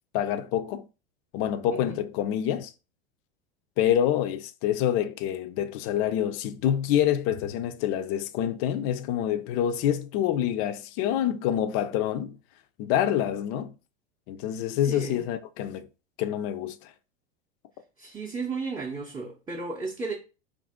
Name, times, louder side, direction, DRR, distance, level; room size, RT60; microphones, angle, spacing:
voice 1, 0.1-0.8 1.3-2.7 3.8-12.4 12.8-13.7 14.3-15.9 16.2-16.9, left 10 dB, 45° left, 0.4 m, -27 dB
voice 2, 14.8-15.2 18.0-20.1, right 4 dB, 15° right, 0.6 m, -34 dB
2.5 x 2.5 x 3.5 m
hypercardioid pair, 100°, 32 cm